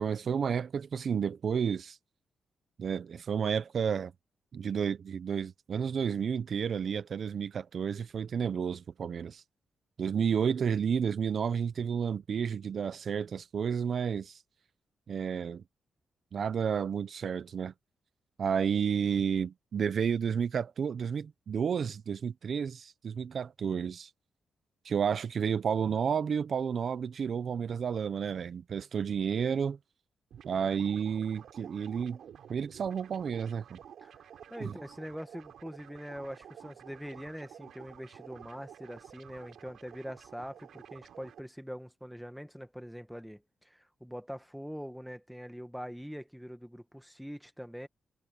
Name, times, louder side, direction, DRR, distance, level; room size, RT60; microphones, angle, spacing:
voice 1, 0.0-2.0 2.8-4.1 4.5-9.4 10.0-14.4 15.1-15.6 16.3-17.7 18.4-24.1 24.8-29.8 30.4-32.2 32.5-33.8 34.6-34.7, right 7 dB, 50° right, 0.6 m, -31 dB
sound 1, 30.3-41.4, right 9 dB, 80° right, 3.7 m, -52 dB
voice 2, 34.5-47.9, equal, ahead, 1.4 m, -43 dB
wide cardioid pair, 135°, 0 cm